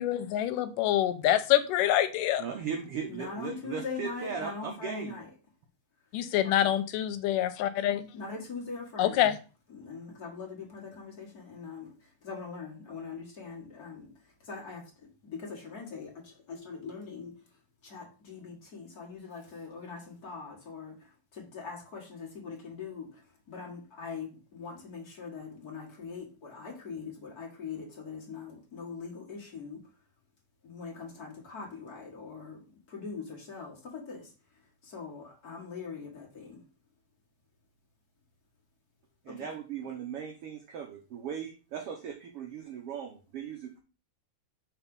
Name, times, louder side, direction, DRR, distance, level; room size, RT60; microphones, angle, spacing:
voice 1, 0.0-2.4 6.1-8.1 9.0-9.4, left 12 dB, 90° left, 2.3 m, -26 dB
voice 2, 2.4-5.2 39.2-43.8, right 7 dB, 85° right, 1.3 m, -38 dB
voice 3, 3.0-5.2 6.4-6.7 8.1-9.2 9.7-11.9 12.2-14.1 14.5-14.8 15.2-17.3 17.8-20.9 21.4-23.1 23.5-29.8 30.6-32.6 32.9-34.3 34.8-36.6 39.3-39.5, left 5 dB, 40° left, 1.5 m, -42 dB
5.9 x 4.2 x 5.3 m
omnidirectional pair, 3.8 m